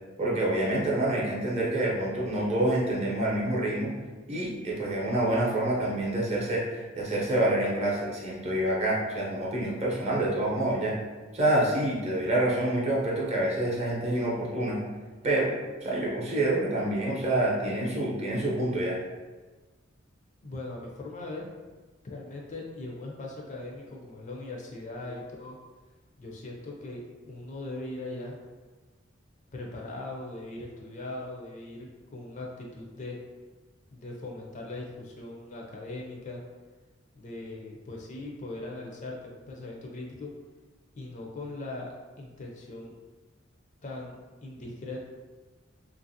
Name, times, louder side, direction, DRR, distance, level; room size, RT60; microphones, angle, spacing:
voice 1, 0.2-3.9 4.3-11.0 11.3-14.8 15.2-15.5 15.8-19.0, right 1 dB, 35° right, -4 dB, 0.7 m, -27 dB
voice 2, 20.4-21.5 22.0-25.6 26.2-28.4 29.5-33.2 33.9-36.4 37.1-40.3 40.9-41.9 42.2-42.9 43.8-45.0, left 2 dB, 40° left, -1 dB, 0.5 m, -40 dB
2.8 x 2.5 x 2.7 m, 1.3 s
head